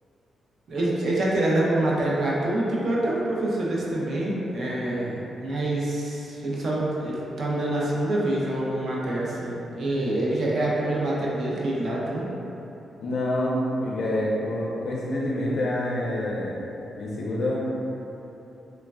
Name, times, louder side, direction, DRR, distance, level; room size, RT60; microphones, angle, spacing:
voice 1, 0.7-12.3, right 1 dB, 50° right, -5 dB, 0.5 m, -26 dB
voice 2, 13.0-13.6 13.8-16.6 16.9-17.6, left 1 dB, 60° left, -5 dB, 0.4 m, -27 dB
3.1 x 2.2 x 2.3 m, 2.9 s
wide cardioid pair, 150°, 0 cm